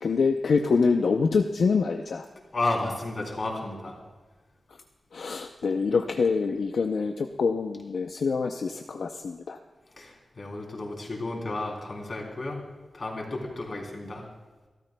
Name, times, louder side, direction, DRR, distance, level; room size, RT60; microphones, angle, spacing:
voice 1, 0.0-2.3 5.1-9.6, left 4 dB, 70° left, 5 dB, 0.5 m, -25 dB
voice 2, 2.5-4.0 10.0-14.3, left 2 dB, 40° left, -1 dB, 3.2 m, -32 dB
28.5 x 13.0 x 2.2 m, 1.3 s
wide cardioid pair, 170°, 0 cm